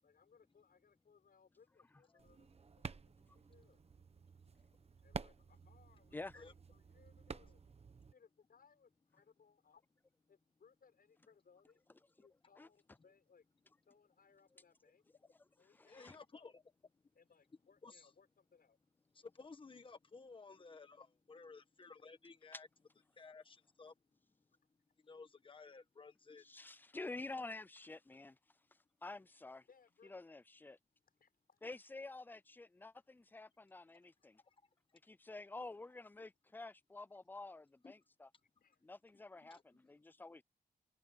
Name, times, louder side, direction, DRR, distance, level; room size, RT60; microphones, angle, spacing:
voice 1, 0.0-2.5 2.8-3.0 3.3-3.8 5.0-7.6 8.1-9.8 10.3-11.8 12.2-13.4 13.9-15.0 15.6-16.5 17.1-18.8 24.5-24.6 29.7-30.2 31.1-31.6 34.0-34.3 38.6-38.8, left 6 dB, 70° left, 6.8 m, -69 dB
sound 1, 2.2-8.1, right 5 dB, 40° right, 1.0 m, -51 dB
voice 2, 6.1-6.4 12.2-12.3 12.6-12.7 15.7-16.2 26.4-28.4 29.0-29.7 30.0-30.8 31.6-34.4 35.0-38.3 38.8-40.4, left 2 dB, 10° left, 0.4 m, -50 dB
voice 3, 15.7-16.6 17.8-18.1 19.1-22.7 23.1-23.9 25.0-26.4 34.4-34.6 37.8-37.9 39.4-39.9, left 4 dB, 30° left, 1.3 m, -56 dB
wide cardioid pair, 155°, 16 cm